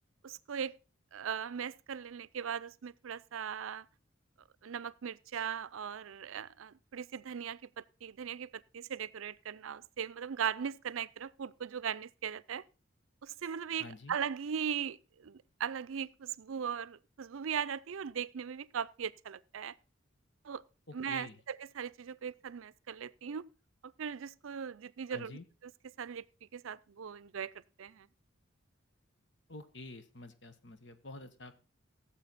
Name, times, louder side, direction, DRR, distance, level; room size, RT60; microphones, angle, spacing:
voice 1, 0.2-0.7 1.1-3.9 4.6-12.6 13.2-19.8 20.4-20.6 20.9-23.4 23.8-25.4 26.0-26.2 26.5-28.1, right 7 dB, 90° right, 0.5 m, -39 dB
voice 2, 13.8-14.2 20.9-21.4 25.1-25.4 29.5-31.5, left 2 dB, 60° left, 1.2 m, -48 dB
16.5 x 7.4 x 4.1 m
head